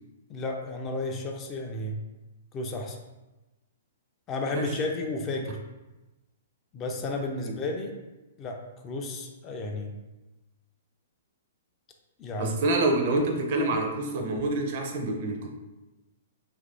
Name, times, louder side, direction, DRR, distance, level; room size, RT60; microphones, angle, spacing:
voice 1, 0.3-2.0 2.5-3.0 4.3-5.6 6.7-8.0 8.4-10.0 12.2-12.5, left 2 dB, 25° left, 2 dB, 0.3 m, -32 dB
voice 2, 12.4-15.5, right 2 dB, 45° right, 3 dB, 0.4 m, -27 dB
2.8 x 2.5 x 2.5 m, 1.1 s
figure-of-eight pair, 115°, 0 cm